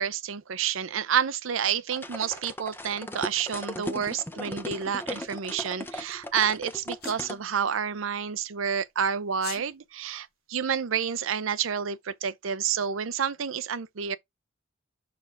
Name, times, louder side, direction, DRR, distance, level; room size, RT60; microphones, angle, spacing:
voice 1, 0.0-14.2, right 7 dB, 85° right, 0.6 m, -29 dB
sound 1, 1.9-7.4, left 1 dB, 10° left, 0.6 m, -37 dB
Sneeze, 7.0-7.2 9.3-9.6, left 9 dB, 50° left, 0.8 m, -39 dB
6.3 x 4.2 x 3.8 m
head